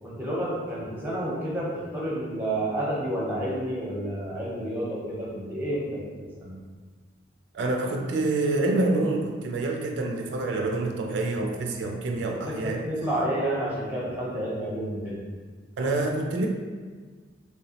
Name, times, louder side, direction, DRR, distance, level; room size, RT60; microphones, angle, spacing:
voice 1, 0.0-6.5 12.2-15.2, right 1 dB, 10° right, -5 dB, 0.7 m, -30 dB
voice 2, 7.5-12.9 15.8-16.5, right 2 dB, 70° right, 2 dB, 0.3 m, -27 dB
3.4 x 2.9 x 2.8 m, 1.5 s
head